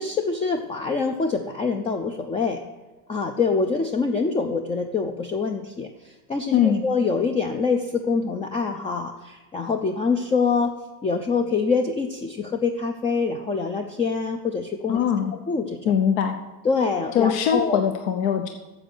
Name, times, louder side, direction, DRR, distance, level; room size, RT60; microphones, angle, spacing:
voice 1, 0.0-2.6 3.1-10.7 11.0-15.0 15.3-15.9 16.6-17.8, left 4 dB, 15° left, 5 dB, 0.4 m, -25 dB
voice 2, 6.5-6.8 14.9-15.3 15.9-16.4 17.1-18.5, left 8 dB, 65° left, 6 dB, 0.9 m, -21 dB
7.8 x 7.5 x 6.4 m, 1.2 s
hypercardioid pair, 105°, 45 cm